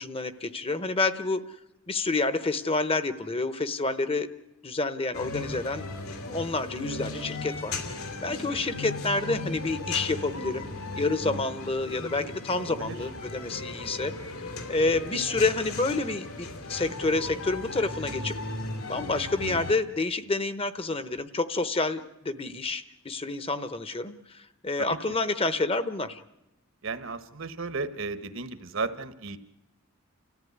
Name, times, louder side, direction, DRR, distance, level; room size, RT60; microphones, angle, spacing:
voice 1, 0.0-1.4 1.9-4.3 4.6-5.9 6.3-7.7 8.2-10.7 11.0-14.2 14.7-18.3 18.9-26.2, left 3 dB, 25° left, 12 dB, 0.9 m, -28 dB
sound 1, 5.1-19.7, left 2 dB, 85° left, 2.9 m, -37 dB
voice 2, 12.6-13.0 24.8-24.9 26.8-29.4, right 4 dB, 65° right, 11 dB, 1.2 m, -34 dB
29.5 x 14.5 x 9.5 m, 0.94 s
head